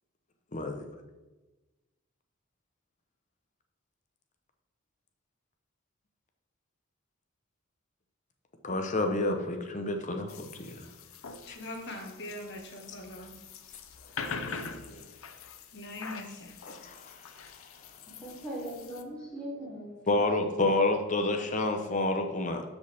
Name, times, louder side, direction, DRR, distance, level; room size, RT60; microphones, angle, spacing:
voice 1, 0.5-0.9 8.6-10.9 14.3-15.1 16.7-17.7 20.1-22.6, left 2 dB, 35° left, 5 dB, 0.9 m, -30 dB
sound 1, 10.3-19.0, left 5 dB, 80° left, 0.7 m, -44 dB
voice 2, 11.5-13.3 15.7-16.6, left 1 dB, 55° left, 2 dB, 1.6 m, -41 dB
voice 3, 18.1-19.9 20.5-20.7, right 1 dB, 5° left, -8 dB, 2.9 m, -40 dB
12.5 x 5.2 x 3.5 m, 1.2 s
head